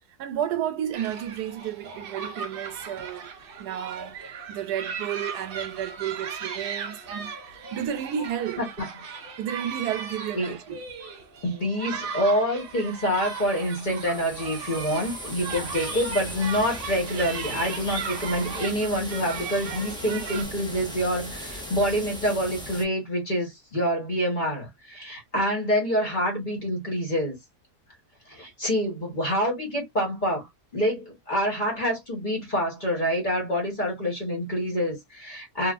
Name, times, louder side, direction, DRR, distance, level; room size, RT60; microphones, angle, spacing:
voice 1, 0.2-3.3 3.6-4.2 4.5-8.6 9.4-10.8, right 10 dB, 85° right, 1.2 m, -32 dB
sound 1, 0.9-20.4, right 5 dB, 65° right, 0.5 m, -37 dB
voice 2, 8.6-8.9 10.3-10.6 11.4-27.4 28.3-30.5 30.7-35.7, equal, 30° left, 1.4 m, -27 dB
sound 2, 12.8-22.8, equal, 5° left, 0.5 m, -38 dB
3.2 x 2.5 x 2.5 m
omnidirectional pair, 1.7 m